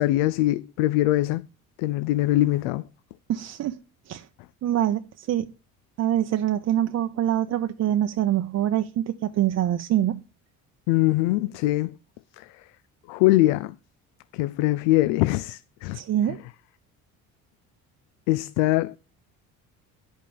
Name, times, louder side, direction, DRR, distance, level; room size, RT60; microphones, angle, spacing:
voice 1, 0.0-1.4 1.8-2.9 10.9-11.9 12.4-12.7 13.1-13.7 14.3-16.0 16.3-16.4 18.3-19.0, left 16 dB, 85° left, 0.5 m, -22 dB
voice 2, 3.3-3.8 4.1-4.3 4.6-5.5 6.0-10.2 15.9-16.4, right 11 dB, 45° right, 0.6 m, -25 dB
10.0 x 5.4 x 5.2 m
supercardioid pair, 85°, 35 cm